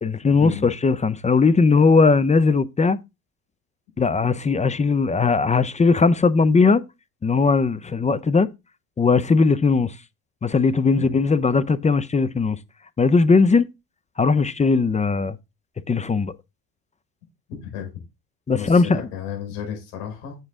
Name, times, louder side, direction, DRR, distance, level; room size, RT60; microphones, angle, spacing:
voice 1, 0.0-3.0 4.0-6.8 7.2-8.5 9.0-10.0 10.4-12.6 13.0-13.7 14.2-15.4 15.9-16.3 18.5-19.0, left 4 dB, 15° left, 0.6 m, -18 dB
voice 2, 18.5-20.4, left 8 dB, 80° left, 4.8 m, -32 dB
7.9 x 7.4 x 3.6 m
supercardioid pair, 85°, 47 cm